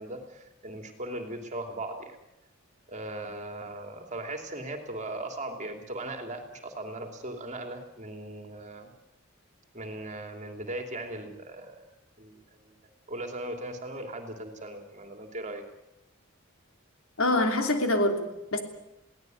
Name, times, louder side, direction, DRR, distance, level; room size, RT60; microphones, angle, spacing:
voice 1, 0.0-2.2 2.9-8.9 9.7-11.8 12.2-12.7 13.1-15.6, right 1 dB, 35° right, 5 dB, 2.8 m, -38 dB
voice 2, 17.2-18.6, left 1 dB, 75° left, 5 dB, 3.0 m, -25 dB
22.0 x 17.0 x 9.3 m, 0.90 s
head